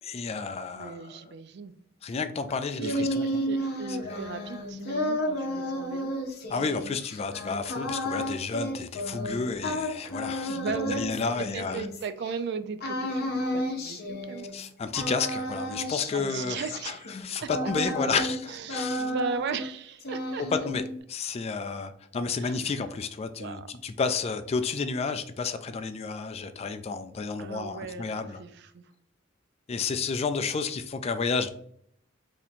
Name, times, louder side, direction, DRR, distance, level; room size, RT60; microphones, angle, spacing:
voice 1, 0.0-1.3 2.0-3.2 3.9-4.2 6.5-10.6 10.9-11.9 14.5-19.1 20.6-20.8 21.1-28.4 29.7-31.5, left 4 dB, 30° left, 9 dB, 0.3 m, -31 dB
voice 2, 0.7-1.7 2.8-6.1 10.5-11.1 11.5-14.5 16.1-17.5 18.5-20.4 22.4-22.6 23.4-23.7 27.4-28.8, right 5 dB, 60° right, 11 dB, 0.4 m, -37 dB
sound 1, 2.5-12.3 12.8-14.7 14.9-18.4 18.7-19.7 20.0-21.0, equal, 50° left, 0.7 m, -32 dB
2.8 x 2.6 x 4.0 m, 0.66 s
head